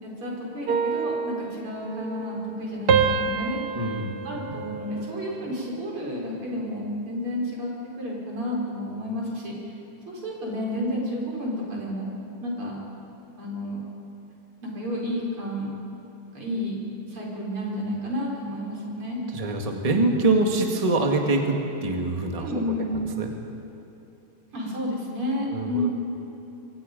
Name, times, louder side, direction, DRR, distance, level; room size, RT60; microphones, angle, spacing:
voice 1, 0.0-3.8 4.2-7.7 8.0-9.7 10.1-12.1 12.4-12.8 13.4-13.9 14.6-15.7 16.3-16.8 17.1-19.2 22.4-23.0 24.5-25.9, left 1 dB, 85° right, -3 dB, 5.8 m, -31 dB
sound 1, 0.7-2.6 2.9-5.4 5.9-6.3, right 6 dB, 55° right, 1.4 m, -28 dB
voice 2, 3.8-4.6 19.3-22.5 22.9-23.3 25.5-25.9, right 2 dB, 20° right, 2 dB, 1.7 m, -25 dB
27.0 x 23.5 x 5.3 m, 2.8 s
omnidirectional pair, 2.3 m